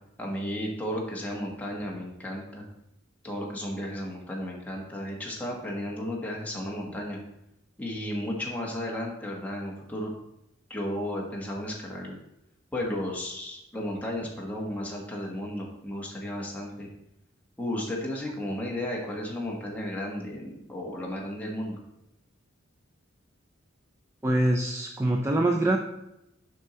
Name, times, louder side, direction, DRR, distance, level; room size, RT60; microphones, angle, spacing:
voice 1, 0.2-2.7 3.2-7.2 7.8-10.1 10.7-12.2 12.7-16.9 17.6-21.8, left 1 dB, 5° left, -2 dB, 1.5 m, -34 dB
voice 2, 24.2-25.8, right 1 dB, 15° right, 1 dB, 0.4 m, -24 dB
6.9 x 5.6 x 4.3 m, 0.86 s
head